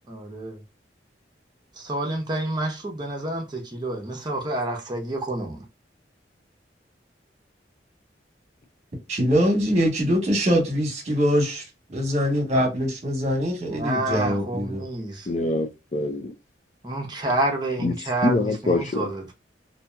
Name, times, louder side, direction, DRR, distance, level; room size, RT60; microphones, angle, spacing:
voice 1, 0.1-0.6 1.8-5.6 13.7-15.3 16.8-19.3, right 1 dB, 25° right, 0.8 m, -28 dB
voice 2, 9.1-11.6 11.9-14.8, equal, 40° right, 1.2 m, -23 dB
voice 3, 15.3-16.3 17.8-17.9 18.2-19.1, left 2 dB, 40° left, 0.5 m, -24 dB
2.8 x 2.7 x 2.3 m
head